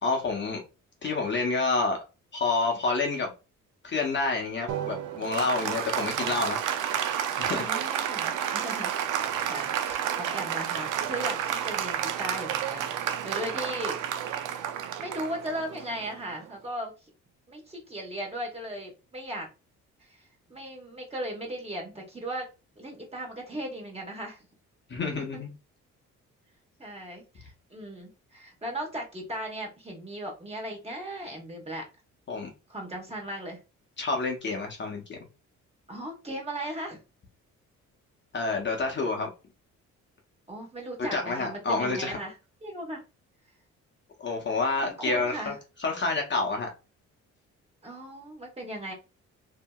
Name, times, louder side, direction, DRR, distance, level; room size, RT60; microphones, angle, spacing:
voice 1, 0.0-0.6 1.0-2.0 2.3-3.3 3.8-6.6 7.4-7.6 24.9-25.5 32.3-32.5 34.0-35.2 38.3-39.3 41.1-42.2 44.2-45.5 45.8-46.7, left 3 dB, 40° left, 0.8 m, -28 dB
Applause, 4.7-16.6, right 9 dB, 85° right, 0.5 m, -31 dB
voice 2, 7.6-14.0 15.0-16.9 17.5-19.5 20.0-22.5 22.8-24.4 26.8-31.8 32.7-33.6 35.9-37.0 40.5-42.4 42.6-43.0 44.8-45.6 47.8-48.9, right 1 dB, 20° right, 1.1 m, -37 dB
2.8 x 2.6 x 2.2 m
cardioid pair, 90°, 30 cm